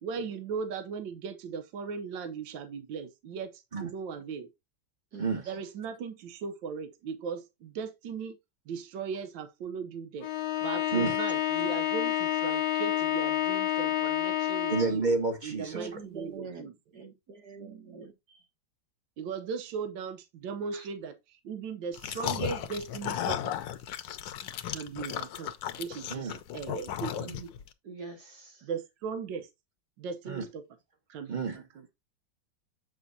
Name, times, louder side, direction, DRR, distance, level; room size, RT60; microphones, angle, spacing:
voice 1, 0.0-4.5 5.5-8.4 8.7-10.3 10.6-15.1 15.4-16.7 19.2-23.5 24.7-25.5 25.8-27.3 28.6-29.5 30.0-30.6 31.1-31.9, right 5 dB, 80° right, 1.6 m, -38 dB
Bowed string instrument, 10.2-15.1, left 12 dB, 70° left, 1.0 m, -29 dB
voice 2, 14.7-15.9 26.1-26.3 30.2-30.4 31.3-31.6, right 4 dB, 25° right, 1.4 m, -29 dB
voice 3, 15.7-16.7 16.9-17.1 17.4-18.5 20.7-20.9 27.2-27.5 27.8-28.7, right 5 dB, 60° right, 2.4 m, -44 dB
sound 1, 21.9-27.7, left 11 dB, 85° left, 1.4 m, -35 dB
7.6 x 6.1 x 2.7 m
omnidirectional pair, 2.0 m